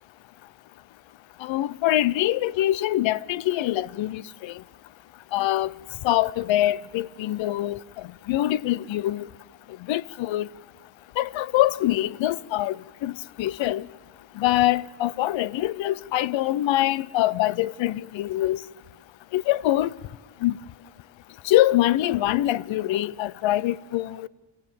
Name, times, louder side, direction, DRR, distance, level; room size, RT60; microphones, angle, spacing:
voice 1, 1.4-4.6 5.3-5.7 6.0-9.2 9.9-10.5 11.2-13.9 14.4-18.6 19.3-19.9 20.4-20.6 21.4-24.3, left 14 dB, 65° left, 0.6 m, -24 dB
26.0 x 16.0 x 7.0 m
cardioid pair, 125°, 49 cm